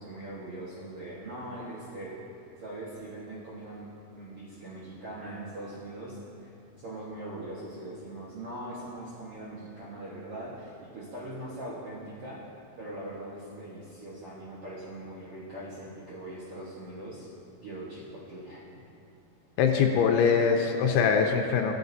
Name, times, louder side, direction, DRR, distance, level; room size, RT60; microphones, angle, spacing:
voice 1, 0.0-2.2 2.6-3.9 4.1-6.5 6.8-12.4 12.8-17.3 17.6-18.6, right 1 dB, 65° right, -8 dB, 1.4 m, -41 dB
voice 2, 19.6-21.7, left 6 dB, 85° left, 2 dB, 2.6 m, -23 dB
17.0 x 8.6 x 2.7 m, 2.9 s
omnidirectional pair, 4.7 m